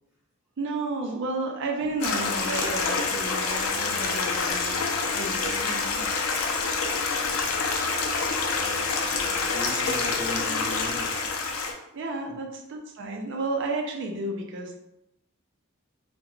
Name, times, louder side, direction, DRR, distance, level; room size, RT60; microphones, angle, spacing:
voice 1, 0.6-4.9 5.1-6.1 8.7-8.9 9.7-10.0 11.9-14.8, right 2 dB, 60° right, 2 dB, 0.4 m, -32 dB
Stream, 2.0-11.7, left 4 dB, 85° left, 0.4 m, -27 dB
voice 2, 8.5-11.2, left 1 dB, 5° right, -8 dB, 0.8 m, -37 dB
3.0 x 2.1 x 2.3 m, 0.84 s
head